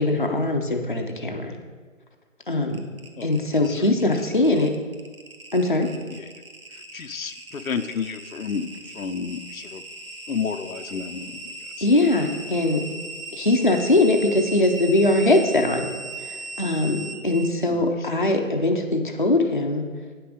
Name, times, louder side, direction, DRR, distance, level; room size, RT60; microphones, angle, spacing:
voice 1, 0.0-1.6 2.5-2.8 3.2-4.7 5.5-5.9 11.8-12.9 13.3-15.9 16.2-19.8, left 2 dB, 35° left, 2 dB, 0.7 m, -21 dB
sound 1, 2.7-17.6, right 2 dB, 85° right, 1.4 m, -38 dB
voice 2, 3.2-3.7 4.5-4.7 6.1-6.3 6.9-8.7 8.9-9.8 10.3-11.4 11.8-11.9 17.7-17.9, left 6 dB, 85° left, 8 dB, 0.8 m, -31 dB
9.2 x 6.0 x 4.9 m, 1.5 s
figure-of-eight pair, 175°, 41 cm